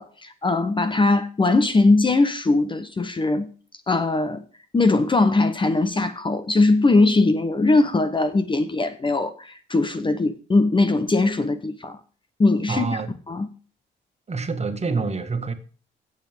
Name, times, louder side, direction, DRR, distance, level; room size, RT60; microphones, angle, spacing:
voice 1, 0.0-3.5 3.9-4.4 4.7-12.0 12.4-12.8 13.3-13.5, left 3 dB, 25° left, 1.0 m, -20 dB
voice 2, 12.7-13.1 14.3-15.5, right 4 dB, 35° right, 1.8 m, -26 dB
15.5 x 7.4 x 3.6 m
cardioid pair, 90°, 20 cm